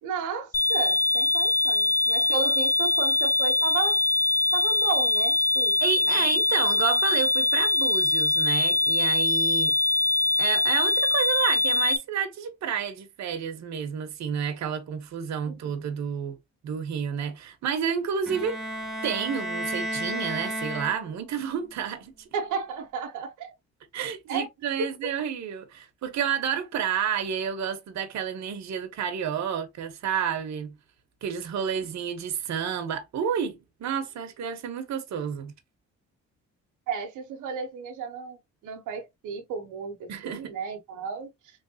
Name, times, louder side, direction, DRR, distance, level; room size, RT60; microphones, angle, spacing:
voice 1, 0.0-4.0 4.5-5.8 6.2-6.3 15.5-15.9 22.3-23.5 24.3-24.5 36.9-41.3, right 6 dB, 90° right, 0.9 m, -34 dB
sound 1, 0.5-12.0, left 3 dB, 30° left, 0.6 m, -23 dB
voice 2, 5.8-9.8 10.4-16.4 16.6-18.5 19.0-22.3 23.9-30.8 31.2-35.5 40.1-40.6, right 8 dB, 65° right, 0.9 m, -30 dB
Bowed string instrument, 18.3-21.4, right 1 dB, ahead, 0.8 m, -33 dB
3.2 x 3.1 x 2.7 m
cardioid pair, 90°, 30 cm